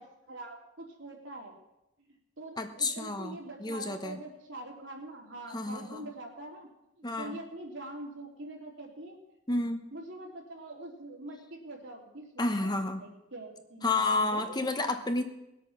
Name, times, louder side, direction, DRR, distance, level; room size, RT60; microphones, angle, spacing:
voice 1, 0.0-1.6 2.0-6.7 7.0-9.2 9.9-14.7, right 2 dB, 80° right, -1 dB, 3.2 m, -44 dB
voice 2, 2.6-4.2 5.5-6.1 7.0-7.4 9.5-9.8 12.4-13.0 13.8-15.2, left 2 dB, 20° left, 7 dB, 1.0 m, -30 dB
19.5 x 8.4 x 5.9 m, 0.87 s
head